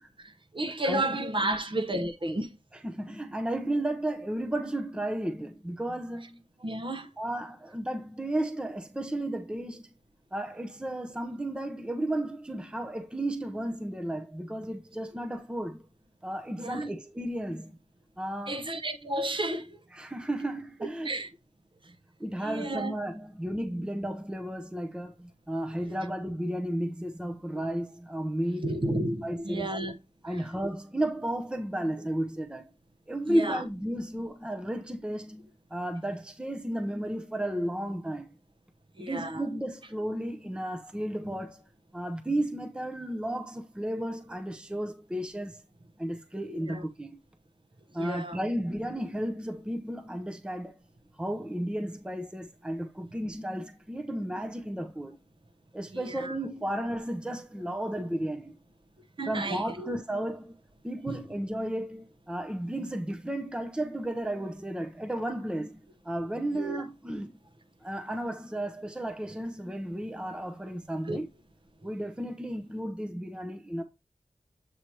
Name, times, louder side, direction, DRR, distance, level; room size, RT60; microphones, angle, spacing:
voice 1, 0.2-2.5 6.6-7.1 16.6-16.9 18.5-19.8 21.0-21.3 22.4-22.9 28.6-30.0 33.3-33.6 39.0-39.4 46.5-46.8 48.0-48.4 55.9-56.3 59.2-59.9 66.6-66.8 71.1-71.2, right 1 dB, 45° right, 0.9 m, -32 dB
voice 2, 0.8-1.2 1.4-1.6 2.7-6.4 7.2-9.9 10.3-15.8 16.2-17.8 18.2-18.6 19.9-21.2 22.2-28.8 29.2-29.7 30.2-32.7 33.1-38.3 39.0-41.6 41.9-45.6 46.0-47.2 47.9-50.8 51.2-55.2 55.7-58.6 59.3-60.5 60.8-67.4 67.8-71.3 71.8-73.8, right 1 dB, 10° right, 0.6 m, -33 dB
7.6 x 2.8 x 4.6 m
wide cardioid pair, 85°, 12 cm